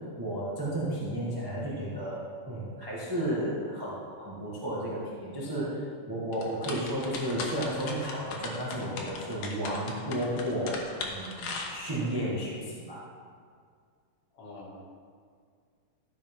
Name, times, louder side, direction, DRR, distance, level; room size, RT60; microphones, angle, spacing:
voice 1, 0.2-10.8 11.1-13.0, right 1 dB, 15° right, -7 dB, 0.9 m, -33 dB
sound 1, 6.3-12.2, left 4 dB, 85° left, 2.7 m, -38 dB
voice 2, 14.3-14.8, left 2 dB, 55° left, -3 dB, 2.5 m, -46 dB
13.5 x 5.7 x 5.5 m, 2.1 s
omnidirectional pair, 3.6 m